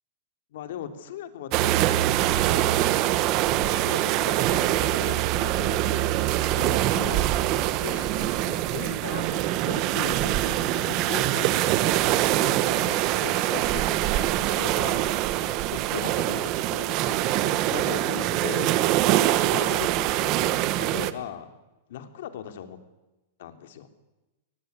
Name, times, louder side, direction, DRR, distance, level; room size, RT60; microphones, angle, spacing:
voice 1, 0.5-2.1 2.3-2.7 3.6-5.8 6.1-7.3 7.8-15.1 15.6-18.8 19.5-21.5 21.9-22.8 23.4-23.9, left 9 dB, 60° left, 8 dB, 3.1 m, -39 dB
sound 1, 1.5-21.1, right 14 dB, 30° right, 1.1 m, -24 dB
23.0 x 20.0 x 9.6 m, 1.0 s
supercardioid pair, 170°, 0 cm